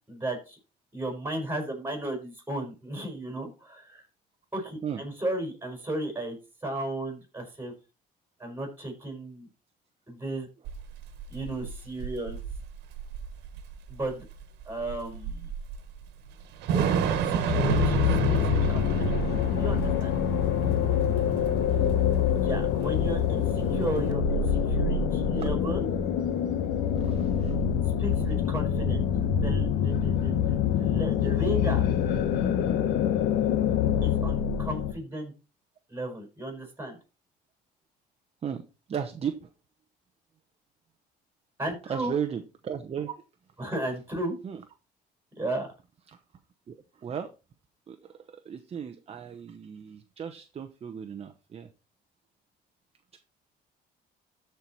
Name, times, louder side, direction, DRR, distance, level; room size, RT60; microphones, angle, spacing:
voice 1, 0.1-0.6 0.9-4.0 4.5-6.4 6.6-7.7 8.4-9.5 10.1-10.5 11.3-12.4 13.9-14.2 14.6-15.5 16.7-19.2 19.5-20.1 22.3-25.9 28.0-29.0 29.3-31.8 34.0-35.3 35.9-37.0 41.6-42.1 43.6-44.4 45.4-45.7, right 1 dB, 10° right, 4 dB, 5.0 m, -35 dB
Thunder / Rain, 10.6-24.1, right 7 dB, 85° right, 1.5 m, -32 dB
sound 1, 17.5-34.9, left 8 dB, 85° left, 1.1 m, -25 dB
voice 2, 27.0-27.6 38.4-38.6 38.9-39.5 41.9-43.2 43.6-43.7 44.4-44.6 46.1-46.2 46.7-47.3 47.9-48.0 48.3-51.7, right 8 dB, 35° right, 7 dB, 0.9 m, -36 dB
13.0 x 4.7 x 4.2 m, 0.30 s
cardioid pair, 110°, 17 cm